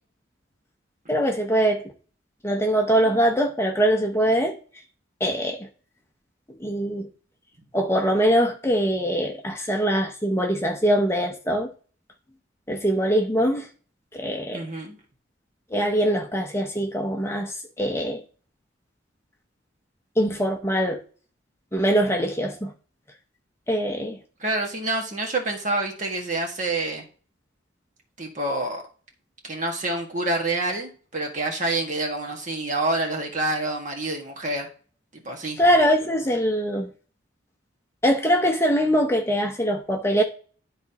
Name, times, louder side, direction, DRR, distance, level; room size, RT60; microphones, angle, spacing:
voice 1, 1.1-1.8 2.4-4.6 5.2-5.7 6.6-7.1 7.7-11.7 12.7-13.7 14.1-14.6 15.7-18.2 20.2-21.0 21.7-22.7 23.7-24.2 35.6-36.9 38.0-40.2, equal, 15° left, 0.7 m, -22 dB
voice 2, 14.5-14.9 24.4-27.0 28.2-28.8 29.4-34.7 35.1-35.6, right 2 dB, 40° right, 1.6 m, -27 dB
12.0 x 4.1 x 2.9 m
head